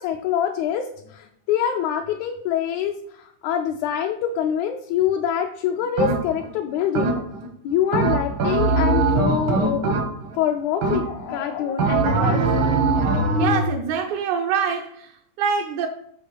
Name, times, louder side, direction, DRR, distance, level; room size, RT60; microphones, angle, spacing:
voice 1, 0.0-7.2 7.6-9.9 10.3-12.8, left 9 dB, 80° left, 4 dB, 1.8 m, -25 dB
sound 1, 6.0-6.5 6.9-7.5 7.9-10.4 10.8-11.3 11.8-13.7, right 3 dB, 65° right, 1.2 m, -21 dB
voice 2, 13.4-15.1 15.4-15.9, right 7 dB, 80° right, 2 dB, 2.0 m, -24 dB
7.8 x 3.2 x 5.2 m, 0.70 s
omnidirectional pair, 3.4 m